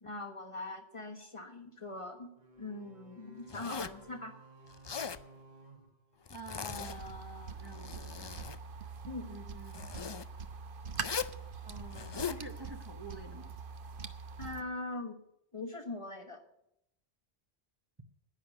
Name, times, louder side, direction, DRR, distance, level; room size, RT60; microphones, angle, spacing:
voice 1, 0.0-2.3 2.6-4.3 9.1-9.4 14.4-15.2 15.5-16.4, left 2 dB, 30° left, 4 dB, 1.4 m, -42 dB
sound 1, 2.4-6.8, right 3 dB, 40° right, 1.8 m, -58 dB
Zipper (clothing), 3.5-4.0 4.7-5.2 6.3-7.1 7.6-8.6 9.7-10.3 11.0-11.4 11.9-12.4, left 6 dB, 45° left, 0.3 m, -39 dB
voice 2, 6.3-8.4 9.2-9.9 11.6-13.6, right 1 dB, 25° right, 4 dB, 1.0 m, -48 dB
sound 2, 6.7-14.6, right 5 dB, 55° right, 1.0 m, -44 dB
11.0 x 9.8 x 8.1 m, 0.81 s
omnidirectional pair, 1.1 m